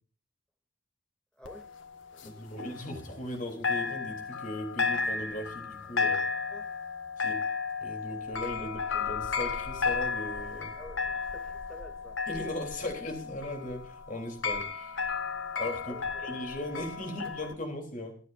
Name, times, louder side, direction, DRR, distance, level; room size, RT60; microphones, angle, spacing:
voice 1, 1.3-1.7 2.1-2.6 6.3-6.7 8.6-8.7 10.8-12.2 15.8-16.3 16.8-16.9 17.3-17.4, equal, 5° left, 4 dB, 2.6 m, -50 dB
sound 1, 1.4-3.4 3.6-17.5, left 5 dB, 80° left, 1.7 m, -34 dB
voice 2, 2.2-6.2 7.2-7.4 7.8-10.8 12.3-14.9 15.6-16.0 16.2-18.2, left 1 dB, 45° left, 3 dB, 3.5 m, -38 dB
24.5 x 9.6 x 2.6 m, 0.42 s
head